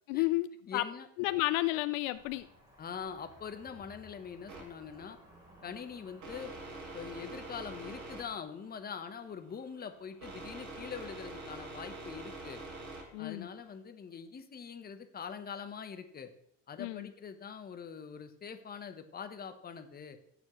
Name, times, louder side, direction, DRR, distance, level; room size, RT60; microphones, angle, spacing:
voice 1, 0.1-0.8 1.2-2.5 13.1-13.5 16.8-17.1, left 18 dB, 80° left, 14 dB, 0.6 m, -31 dB
voice 2, 0.7-1.1 2.8-5.2 5.6-6.5 6.9-12.6 13.2-16.3 16.7-20.2, left 6 dB, 25° left, 8 dB, 1.1 m, -43 dB
Cricket / Motor vehicle (road), 2.1-8.4, equal, 10° right, 3.6 m, -59 dB
sound 1, 4.5-13.7, right 2 dB, 50° right, 3.3 m, -46 dB
17.0 x 7.1 x 3.2 m, 0.71 s
supercardioid pair, 115°, 36 cm